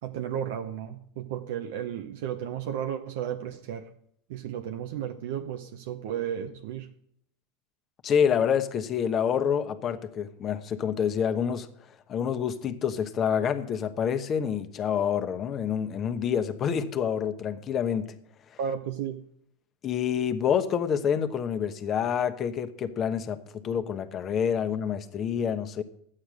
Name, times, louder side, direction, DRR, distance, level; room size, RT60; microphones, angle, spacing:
voice 1, 0.0-3.9 4.3-6.9 18.6-19.2, right 9 dB, 70° right, 0.8 m, -33 dB
voice 2, 8.0-18.1 18.5-18.6 19.8-25.8, left 8 dB, 35° left, 1.1 m, -27 dB
11.5 x 8.8 x 6.3 m
hypercardioid pair, 110°, 0 cm